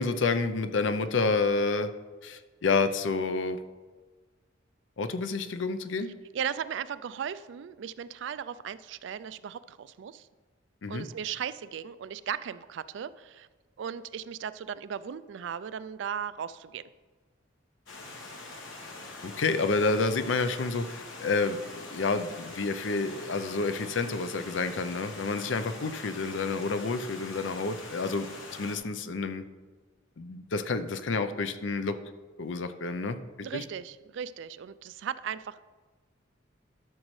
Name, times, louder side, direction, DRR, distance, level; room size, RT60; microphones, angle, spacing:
voice 1, 0.0-1.9 2.2-3.6 5.0-6.1 10.8-11.0 19.2-28.3 28.6-29.4 30.2-32.0 32.4-33.6, left 3 dB, 75° left, 11 dB, 0.5 m, -29 dB
voice 2, 6.3-10.3 10.9-13.5 13.8-16.8 33.4-35.6, right 8 dB, 70° right, 16 dB, 0.3 m, -37 dB
Stream, 17.9-28.8, left 2 dB, 90° left, 1.4 m, -44 dB
12.5 x 6.3 x 3.2 m, 1.4 s
head